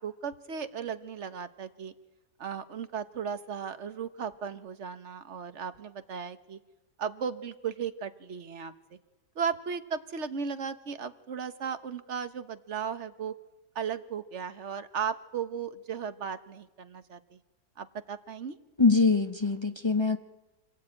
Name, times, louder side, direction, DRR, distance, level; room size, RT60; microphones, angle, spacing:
voice 1, 0.0-1.9 2.4-6.6 7.0-8.7 9.3-13.3 13.7-17.4 17.8-18.6, right 7 dB, 50° right, 10 dB, 1.3 m, -36 dB
voice 2, 18.8-20.2, left 4 dB, 25° left, 6 dB, 0.6 m, -23 dB
26.0 x 18.0 x 8.9 m, 1.1 s
omnidirectional pair, 1.8 m